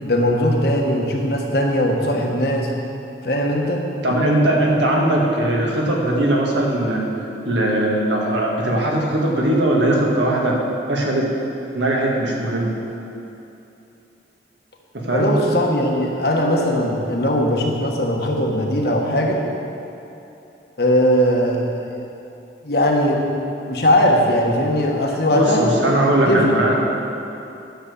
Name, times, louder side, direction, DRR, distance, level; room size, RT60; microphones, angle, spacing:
voice 1, 0.0-2.7 3.2-3.8 15.1-19.4 20.8-21.9 22.6-23.2 23.7-25.7 26.2-26.6, equal, 55° left, 0 dB, 1.3 m, -19 dB
voice 2, 4.0-10.6 10.9-11.3 11.7-12.7 14.9-15.3 25.3-26.8, right 1 dB, 80° right, -2 dB, 1.9 m, -19 dB
10.5 x 7.0 x 6.9 m, 2.9 s
head